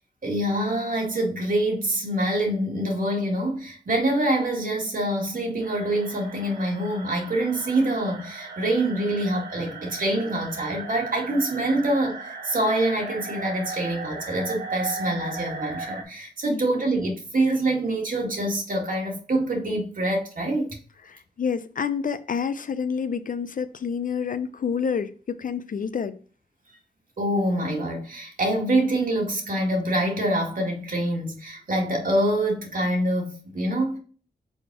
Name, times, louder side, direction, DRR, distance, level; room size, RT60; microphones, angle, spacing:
voice 1, 0.2-20.8 27.2-34.0, right 1 dB, 60° right, 2.0 m, -25 dB
sound 1, 5.6-16.0, right 3 dB, 85° right, 1.4 m, -37 dB
voice 2, 21.0-26.2, left 6 dB, 60° left, 0.5 m, -28 dB
5.3 x 4.1 x 4.6 m
cardioid pair, 60°, 16 cm